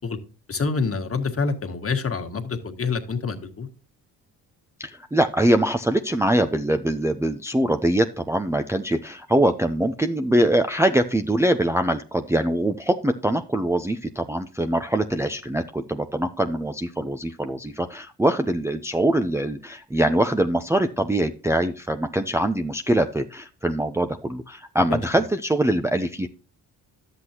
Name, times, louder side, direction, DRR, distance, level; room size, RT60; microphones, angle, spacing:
voice 1, 0.5-3.7 24.9-25.0, left 4 dB, 35° left, 5 dB, 1.8 m, -27 dB
voice 2, 4.8-26.3, right 1 dB, 5° right, 6 dB, 0.7 m, -23 dB
11.0 x 8.1 x 2.9 m, 0.35 s
supercardioid pair, 70°, 40 cm